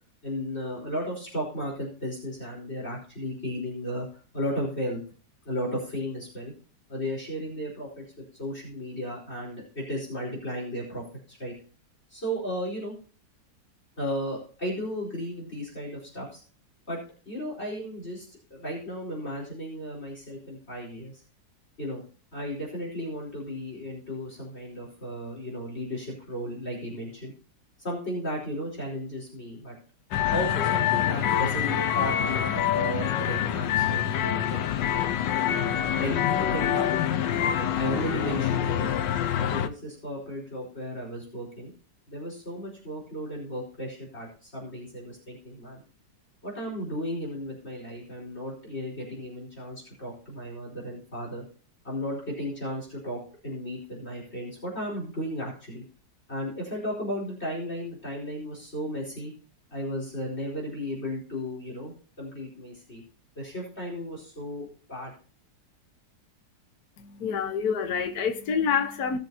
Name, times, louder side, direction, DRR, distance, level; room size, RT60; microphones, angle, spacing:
voice 1, 0.2-4.1 4.3-5.0 5.4-6.5 6.9-8.1 8.4-11.5 12.1-13.0 14.0-16.4 16.9-21.2 21.8-22.0 22.3-27.3 27.8-29.7 30.3-34.6 35.4-38.9 39.4-41.7 42.1-45.8 46.4-51.4 51.8-55.8 56.3-59.3 59.7-63.0 63.3-65.1, equal, 35° left, 4.9 m, -35 dB
sound 1, 30.1-39.7, left 10 dB, 85° left, 1.6 m, -26 dB
voice 2, 67.0-69.2, left 6 dB, 60° left, 1.6 m, -27 dB
19.0 x 7.4 x 2.8 m
omnidirectional pair, 1.9 m